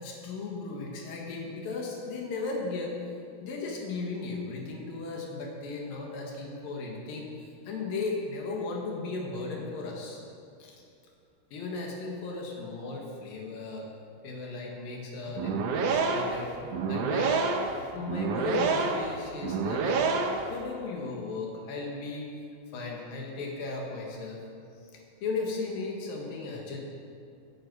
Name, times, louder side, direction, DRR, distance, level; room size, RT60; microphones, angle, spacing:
voice 1, 0.0-3.0 3.4-10.2 10.6-10.8 11.5-13.9 14.2-16.5 16.9-17.5 17.9-20.0 20.5-22.3 22.7-24.5 24.8-26.8, left 3 dB, 80° left, -1 dB, 3.3 m, -36 dB
sound 1, 15.3-20.6, right 4 dB, 70° right, 1.6 m, -28 dB
15.5 x 10.5 x 4.7 m, 2.5 s
omnidirectional pair, 4.0 m